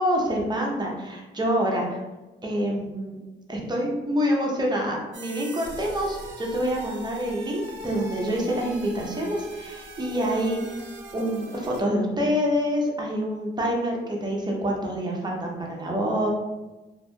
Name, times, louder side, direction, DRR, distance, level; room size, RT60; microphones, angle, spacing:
voice 1, 0.0-2.0 2.4-3.2 3.5-10.8 11.1-16.3, equal, 20° right, -1 dB, 0.6 m, -26 dB
sound 1, 5.1-11.8, right 2 dB, 65° right, 0.6 m, -41 dB
2.7 x 2.6 x 2.2 m, 1.1 s
cardioid pair, 90°, 20 cm